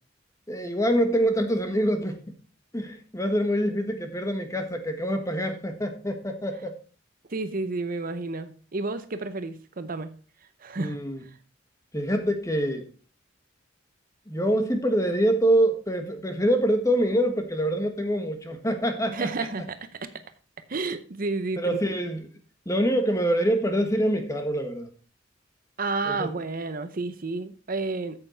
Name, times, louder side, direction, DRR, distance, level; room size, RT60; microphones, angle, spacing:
voice 1, 0.5-2.4 2.7-6.7 10.8-11.2 11.9-12.9 14.3-19.5 21.6-22.3 22.6-24.9 26.0-26.3, equal, 15° left, 5 dB, 1.5 m, -25 dB
voice 2, 7.3-10.1 10.6-11.0 19.1-19.8 20.7-21.6 25.8-28.2, right 3 dB, 50° right, 11 dB, 0.7 m, -31 dB
8.9 x 7.7 x 4.4 m, 0.38 s
head